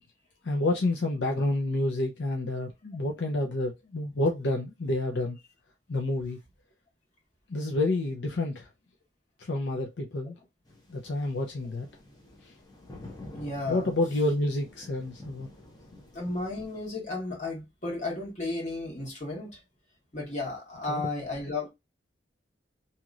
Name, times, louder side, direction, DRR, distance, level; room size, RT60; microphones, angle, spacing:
voice 1, 0.4-5.4 5.9-6.4 7.5-8.7 9.4-10.4 10.9-11.9 13.7-15.5 20.9-21.0, left 2 dB, 80° left, 0.6 m, -29 dB
sound 1, 10.7-16.9, left 1 dB, 20° left, 0.8 m, -49 dB
voice 2, 13.0-13.9 16.1-19.6 20.1-21.7, left 2 dB, 40° left, 1.6 m, -34 dB
3.0 x 2.8 x 2.4 m
head